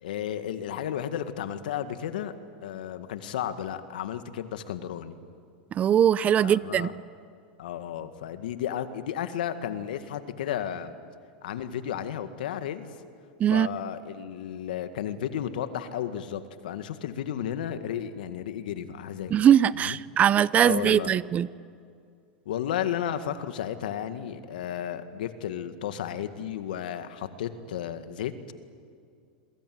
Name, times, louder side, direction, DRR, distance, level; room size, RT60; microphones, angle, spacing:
voice 1, 0.0-2.4 2.6-5.2 6.4-6.9 7.6-10.9 11.4-13.0 13.5-19.3 19.8-20.0 20.6-21.1 22.5-28.3, left 10 dB, 80° left, 10 dB, 1.9 m, -33 dB
voice 2, 5.7-6.9 13.4-13.7 19.3-21.5, right 9 dB, 30° right, 20 dB, 0.6 m, -21 dB
28.0 x 22.5 x 9.5 m, 2.2 s
supercardioid pair, 120°, 5 cm